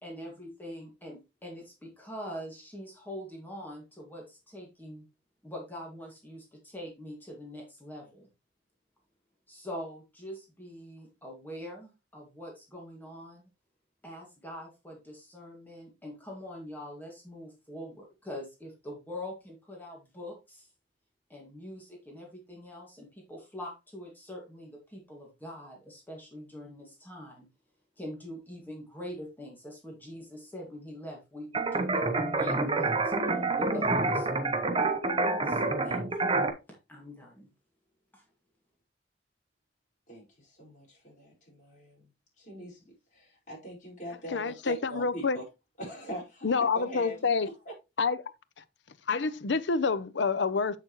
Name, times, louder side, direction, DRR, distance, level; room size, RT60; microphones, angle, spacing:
voice 1, 0.0-5.1 5.4-8.3 9.5-13.5 14.0-20.7 21.3-27.5 28.0-34.5 35.4-36.4 36.9-37.5 38.1-38.2, equal, 10° left, 2.0 m, -43 dB
sound 1, 31.5-36.5, right 3 dB, 30° right, 0.9 m, -27 dB
voice 2, 40.1-42.1 42.4-45.4 45.8-47.2 47.6-47.7, right 1 dB, 45° left, 4.9 m, -43 dB
voice 3, 44.3-45.4 46.4-47.5 48.0-48.2 49.1-50.8, left 4 dB, 80° left, 0.6 m, -27 dB
7.5 x 6.6 x 3.0 m
head